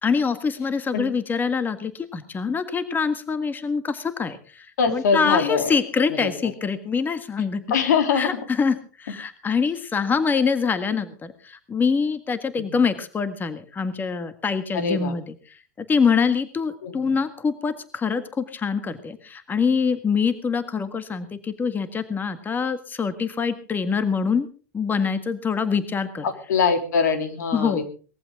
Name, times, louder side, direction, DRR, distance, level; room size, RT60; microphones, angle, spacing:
voice 1, 0.0-7.6 8.1-24.5 24.7-26.3 27.5-27.8, left 5 dB, 20° left, 11 dB, 1.7 m, -25 dB
voice 2, 4.8-5.8 6.2-6.3 7.7-8.4 12.6-12.9 14.7-15.1 16.8-17.0 26.2-27.8, left 6 dB, 80° left, 7 dB, 3.4 m, -23 dB
20.0 x 14.5 x 3.8 m, 0.38 s
hypercardioid pair, 110°, 9 cm